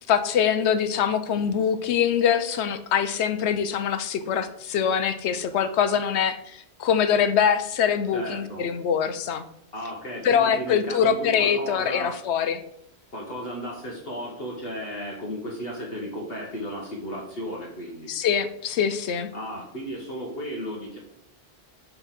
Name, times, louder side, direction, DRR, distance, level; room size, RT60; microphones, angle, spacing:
voice 1, 0.1-9.4 10.2-12.6 18.1-19.3, left 8 dB, 85° left, 11 dB, 0.9 m, -23 dB
voice 2, 8.1-8.7 9.7-12.1 13.1-18.1 19.3-21.0, equal, 60° left, -2 dB, 1.4 m, -34 dB
5.4 x 4.5 x 5.7 m, 0.72 s
omnidirectional pair, 1.1 m